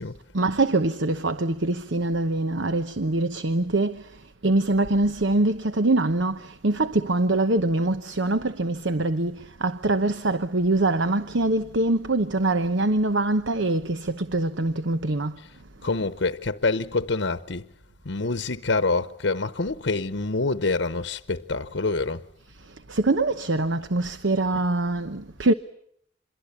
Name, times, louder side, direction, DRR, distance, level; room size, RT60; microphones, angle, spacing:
voice 1, 0.3-15.4 22.5-25.5, right 2 dB, 70° right, 1.0 m, -24 dB
voice 2, 15.8-17.7 18.0-22.3 24.5-24.6, left 3 dB, 65° left, 1.0 m, -26 dB
27.5 x 22.5 x 8.4 m
head